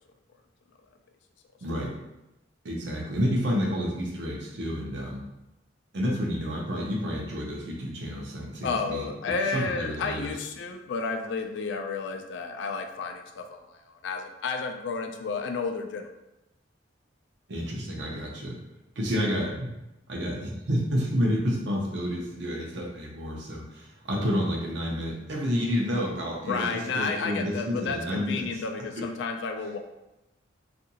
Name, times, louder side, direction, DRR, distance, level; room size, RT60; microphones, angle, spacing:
voice 1, 1.6-1.9 2.6-5.2 5.9-9.1 9.4-10.3 17.5-18.6 19.0-19.7 20.1-29.0, equal, 60° right, -1 dB, 0.6 m, -30 dB
voice 2, 8.6-13.8 14.0-16.1 26.5-29.8, left 4 dB, 65° left, 5 dB, 0.3 m, -31 dB
2.7 x 2.5 x 2.7 m, 0.95 s
head